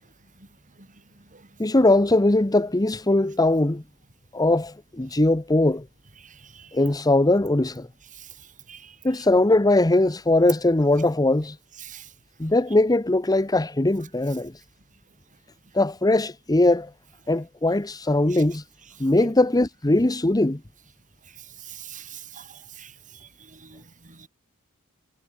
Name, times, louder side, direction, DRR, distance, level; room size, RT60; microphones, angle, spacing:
voice 1, 1.6-3.8 4.3-5.8 6.7-7.9 9.0-11.6 12.4-14.5 15.7-16.9 17.3-18.6 19.0-20.6, left 2 dB, 15° left, 0.9 m, -20 dB
voice 2, 6.2-6.7 8.2-8.3 8.7-8.9 11.8-12.1 18.3-18.4 19.2-19.3 21.6-22.9 23.5-24.3, right 7 dB, 35° right, 4.1 m, -43 dB
head